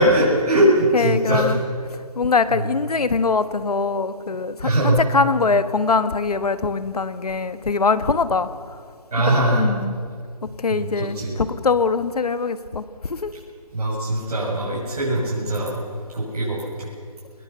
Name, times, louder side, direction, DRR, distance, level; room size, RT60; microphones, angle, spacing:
voice 1, 0.0-1.5 2.5-2.6 4.6-5.0 9.1-9.7 10.7-11.4 13.7-15.8 16.1-16.9, right 1 dB, 70° right, -6 dB, 7.0 m, -21 dB
voice 2, 0.9-1.6 2.2-8.5 9.3-9.9 10.4-12.8 13.1-13.3, left 4 dB, 70° left, 12 dB, 1.5 m, -22 dB
22.0 x 21.0 x 6.8 m, 2.1 s
hypercardioid pair, 165°, 20 cm